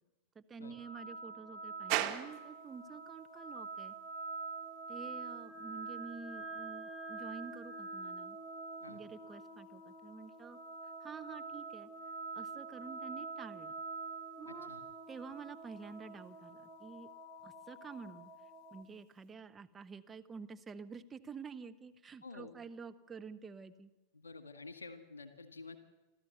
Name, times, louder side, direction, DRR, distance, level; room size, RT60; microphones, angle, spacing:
voice 1, 0.3-3.9 4.9-8.4 8.9-10.6 11.0-11.9 12.3-13.7 14.4-14.7 15.1-17.1 17.4-18.3 18.7-23.9, right 5 dB, 20° right, 8 dB, 1.0 m, -49 dB
sound 1, 0.6-18.8, right 3 dB, 20° left, 3.5 m, -46 dB
sound 2, 1.9-19.4, right 13 dB, 45° right, 1.6 m, -48 dB
voice 2, 14.5-14.8 22.2-22.5 24.1-25.8, left 3 dB, 75° left, 10 dB, 1.8 m, -50 dB
28.5 x 13.0 x 8.0 m, 1.1 s
figure-of-eight pair, 90°, 0 cm